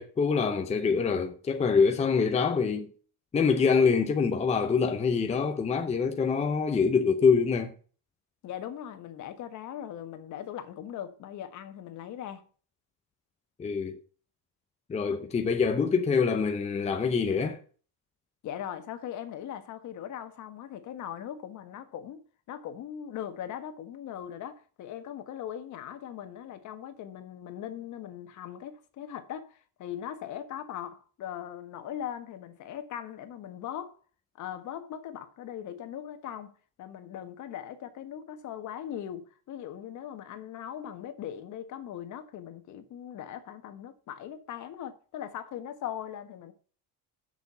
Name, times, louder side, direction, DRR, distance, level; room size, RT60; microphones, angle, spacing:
voice 1, 0.0-2.9 3.3-7.7 13.6-14.0 14.9-17.6, left 5 dB, 20° left, 0.8 m, -25 dB
voice 2, 8.4-12.5 18.4-22.2 22.5-34.0 34.4-36.5 36.8-46.5, left 10 dB, 50° left, 1.4 m, -40 dB
6.9 x 6.8 x 6.9 m
cardioid pair, 160°, 37 cm